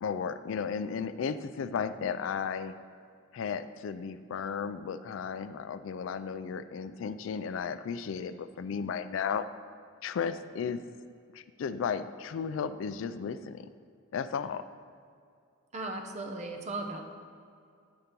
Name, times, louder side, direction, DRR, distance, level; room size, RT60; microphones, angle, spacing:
voice 1, 0.0-2.8 3.3-9.5 10.0-10.8 11.3-13.7 14.1-14.6, left 6 dB, 80° left, 12 dB, 0.3 m, -34 dB
voice 2, 15.7-17.0, right 2 dB, 35° right, 4 dB, 0.7 m, -37 dB
9.5 x 5.2 x 4.4 m, 2.3 s
head